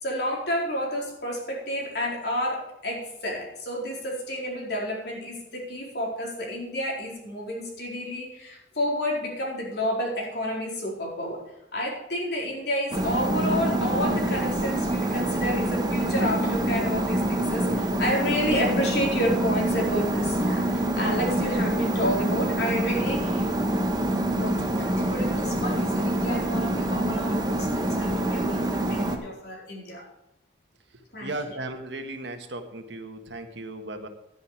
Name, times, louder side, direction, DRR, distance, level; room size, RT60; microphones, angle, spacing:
voice 1, 0.0-11.4 11.7-23.5 24.3-30.0 31.1-31.3, equal, 65° left, -2 dB, 4.3 m, -30 dB
sound 1, 12.9-29.2, right 1 dB, 25° right, 1.3 m, -26 dB
voice 2, 31.2-34.1, right 2 dB, 80° right, 6 dB, 1.5 m, -36 dB
11.0 x 10.0 x 4.9 m, 0.88 s
head